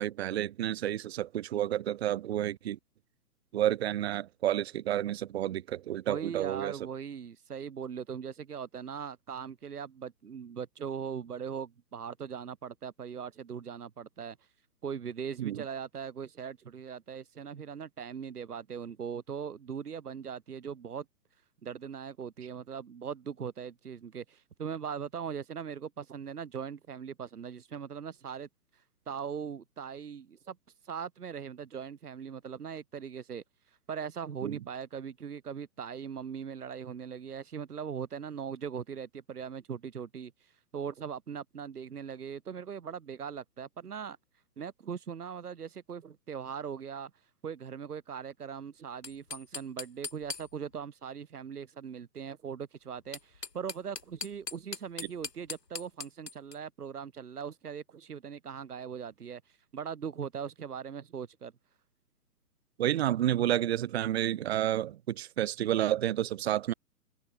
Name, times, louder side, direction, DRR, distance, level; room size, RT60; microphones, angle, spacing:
voice 1, 0.0-2.8 3.5-6.7 15.4-15.6 34.4-34.6 62.8-66.7, right 12 dB, 40° right, 1.0 m, -30 dB
voice 2, 6.1-14.4 14.8-21.0 21.6-28.5 29.1-30.6 30.8-33.4 33.9-40.3 40.7-44.2 44.6-47.1 47.4-61.5, right 7 dB, 70° right, 4.9 m, -40 dB
sound 1, 48.9-50.8 52.9-56.6, left 5 dB, 85° left, 7.6 m, -41 dB
hypercardioid pair, 140°, 48 cm